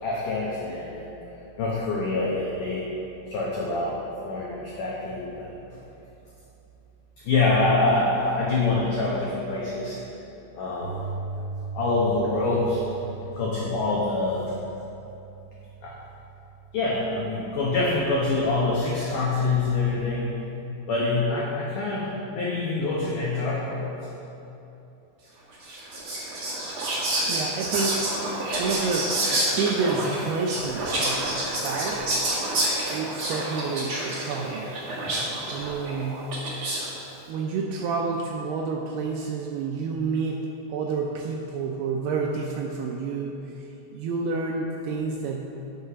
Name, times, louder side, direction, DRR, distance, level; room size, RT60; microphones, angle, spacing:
voice 1, 0.0-1.1 1.6-2.9 3.3-5.5 7.2-10.0 10.6-11.0 11.7-12.8 13.2-14.5 15.8-15.9 16.7-20.4 20.9-24.2, left 3 dB, 90° left, -5 dB, 1.8 m, -25 dB
Piano, 10.8-18.9, right 5 dB, 45° left, 1.0 m, -40 dB
Whispering, 25.6-36.9, right 1 dB, 65° right, 1.3 m, -28 dB
voice 2, 27.3-32.1 32.9-34.7 35.5-36.4 37.3-43.5 43.9-45.5, right 4 dB, 90° right, 1 dB, 2.3 m, -29 dB
8.4 x 6.6 x 5.7 m, 2.9 s
omnidirectional pair, 5.2 m